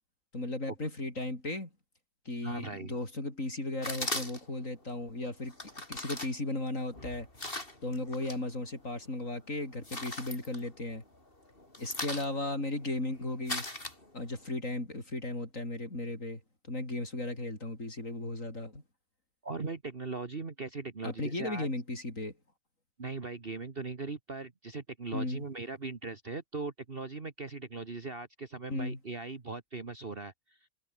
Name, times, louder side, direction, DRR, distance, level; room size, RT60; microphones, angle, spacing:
voice 1, 0.3-1.7 2.3-5.6 5.9-7.3 7.8-11.0 11.8-13.7 14.1-16.4 16.7-18.8 21.0-22.3 25.1-25.4 28.7-29.0, left 2 dB, 45° left, 6.9 m, -36 dB
voice 2, 2.4-2.9 19.4-21.7 23.0-30.3, right 3 dB, 35° right, 1.7 m, -39 dB
sound 1, 3.8-4.6 5.5-8.4 8.8-9.3 9.6-11.2 11.5-14.5, left 2 dB, 30° left, 5.4 m, -39 dB
omnidirectional pair, 1.8 m